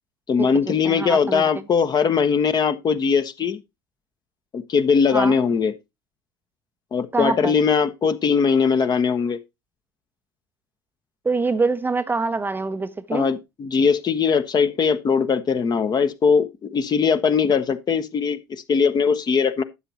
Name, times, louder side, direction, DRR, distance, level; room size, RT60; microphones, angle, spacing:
voice 1, 0.3-3.6 4.5-5.7 6.9-9.4 13.1-19.6, left 6 dB, 30° left, 1.0 m, -20 dB
voice 2, 0.8-1.4 5.1-5.4 7.1-7.6 11.2-13.3, right 3 dB, 15° right, 0.7 m, -24 dB
12.5 x 7.8 x 2.9 m
figure-of-eight pair, 65°, 14 cm